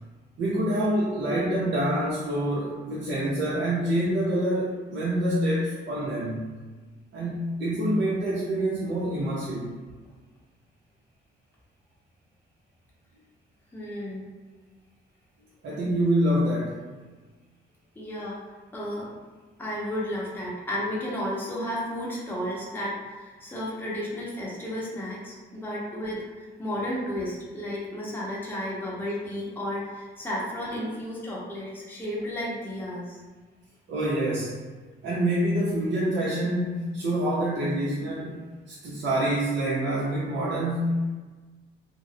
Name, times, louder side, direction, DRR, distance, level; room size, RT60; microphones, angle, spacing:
voice 1, 0.4-6.4 7.1-9.7 15.6-16.8 33.9-34.6 35.0-38.4 38.7-41.1, right 1 dB, 70° right, -7 dB, 0.6 m, -26 dB
voice 2, 13.7-14.3 18.0-18.4 18.7-19.1 19.6-26.2 26.6-33.2, left 1 dB, 10° left, -7 dB, 0.8 m, -33 dB
2.3 x 2.0 x 3.3 m, 1.3 s
cardioid pair, 90°, 20 cm